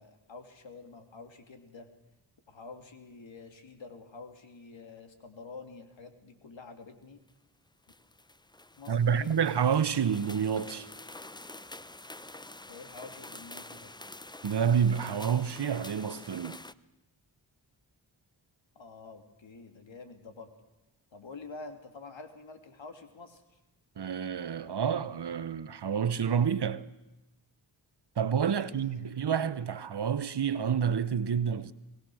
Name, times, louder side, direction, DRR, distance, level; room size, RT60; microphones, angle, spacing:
voice 1, 0.0-1.9 2.5-7.2 8.8-9.4 12.7-13.9 18.7-20.5 21.1-23.6 28.5-29.5, left 4 dB, 65° left, 3.0 m, -48 dB
sound 1, 7.3-7.4 7.9-16.7, left 2 dB, 10° left, 0.7 m, -47 dB
voice 2, 8.9-10.9 14.4-16.6 24.0-26.8 28.2-31.7, right 7 dB, 55° right, 1.1 m, -28 dB
23.0 x 18.5 x 6.4 m
cardioid pair, 40°, 48 cm